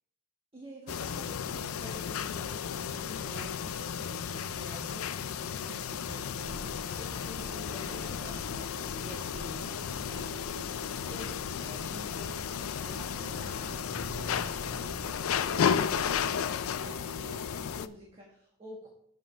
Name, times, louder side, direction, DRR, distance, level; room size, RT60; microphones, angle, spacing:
voice 1, 0.5-18.9, equal, 25° right, -2 dB, 1.4 m, -48 dB
sound 1, 0.9-17.9, left 7 dB, 80° left, 0.4 m, -34 dB
sound 2, 6.4-16.2, right 1 dB, 80° right, 2.8 m, -48 dB
7.5 x 5.4 x 5.9 m, 0.70 s
head